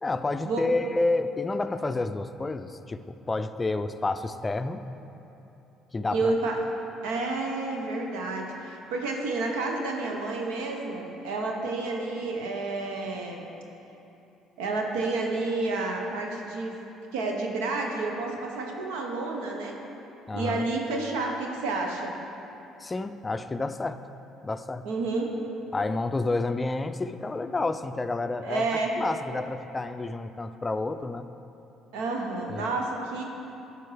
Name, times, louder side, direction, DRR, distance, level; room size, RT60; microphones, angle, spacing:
voice 1, 0.0-4.8 5.9-6.3 20.3-20.6 22.8-24.0 24.4-24.9 25.7-28.6 29.0-31.3 32.5-32.7, left 2 dB, 25° left, 10 dB, 0.4 m, -29 dB
voice 2, 6.1-6.6 7.0-13.5 14.6-16.8 17.1-19.8 20.3-22.1 24.8-25.4 28.4-29.0 31.9-33.2, right 3 dB, 80° right, 1 dB, 0.8 m, -30 dB
12.0 x 5.0 x 3.3 m, 2.9 s
hypercardioid pair, 60°, 0 cm